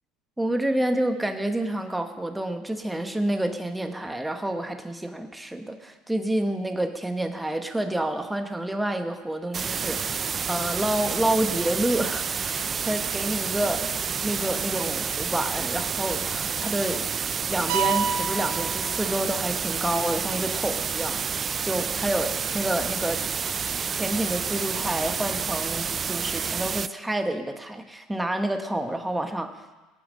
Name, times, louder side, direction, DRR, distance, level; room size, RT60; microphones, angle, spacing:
voice 1, 0.4-17.1 17.5-23.6 23.9-29.5, right 1 dB, 5° right, 6 dB, 1.2 m, -29 dB
sound 1, 9.5-26.9, right 6 dB, 30° right, 0.4 m, -29 dB
sound 2, 17.7-19.6, right 7 dB, 80° right, 1.3 m, -29 dB
19.0 x 8.9 x 6.3 m, 1.2 s
supercardioid pair, 120°, 0 cm